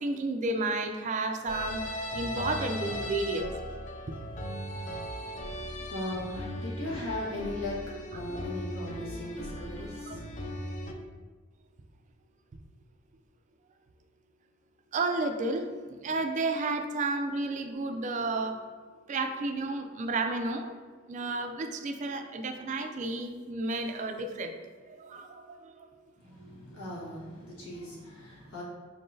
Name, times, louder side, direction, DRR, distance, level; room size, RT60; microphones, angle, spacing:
voice 1, 0.0-3.5 10.1-10.2 14.9-18.6 19.1-20.7 21.1-24.6 24.9-25.9 26.4-26.5, right 2 dB, 35° right, 7 dB, 0.3 m, -32 dB
sound 1, 1.5-10.9, equal, 35° left, 0.5 m, -38 dB
voice 2, 4.6-10.6 26.2-28.6, left 1 dB, 80° left, -6 dB, 1.4 m, -39 dB
4.9 x 3.7 x 2.6 m, 1.5 s
head